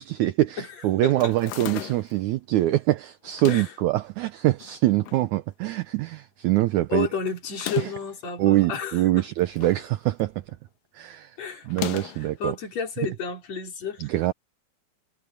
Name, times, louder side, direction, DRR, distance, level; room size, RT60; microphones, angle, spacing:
voice 1, 0.0-7.1 7.8-7.9 8.4-10.4 10.9-11.4 11.7-12.5 14.0-14.3, right 16 dB, 85° right, 1.7 m, -24 dB
voice 2, 1.0-1.3 3.5-3.7 6.9-9.3 11.4-11.7 12.2-14.1, left 6 dB, 45° left, 5.6 m, -31 dB
sound 1, 1.2-2.2 3.2-3.8 4.6-5.3 5.6-5.7 5.9-6.0 7.4-8.1 9.1-9.9 10.2-10.5 11.7-12.3, left 14 dB, 75° left, 2.7 m, -36 dB
omnidirectional pair, 4.2 m